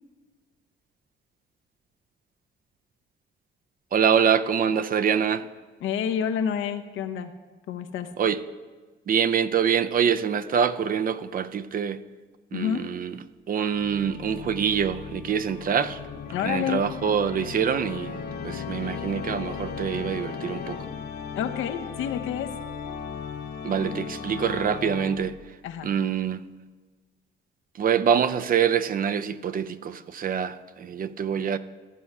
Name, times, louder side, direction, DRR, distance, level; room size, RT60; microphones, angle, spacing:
voice 1, 3.9-5.5 8.2-8.4 9.1-12.0 12.5-13.2 13.5-16.0 16.4-20.8 23.6-25.4 25.8-26.4 27.7-31.6, right 7 dB, 45° right, 13 dB, 0.5 m, -25 dB
voice 2, 5.8-7.3 7.7-8.1 12.5-12.8 16.3-16.8 21.3-22.5 25.6-25.9, left 8 dB, 85° left, 7 dB, 0.7 m, -28 dB
Organ, 13.6-25.5, left 6 dB, 60° left, 1.1 m, -36 dB
14.0 x 4.7 x 5.4 m, 1.3 s
cardioid pair, 90°, 20 cm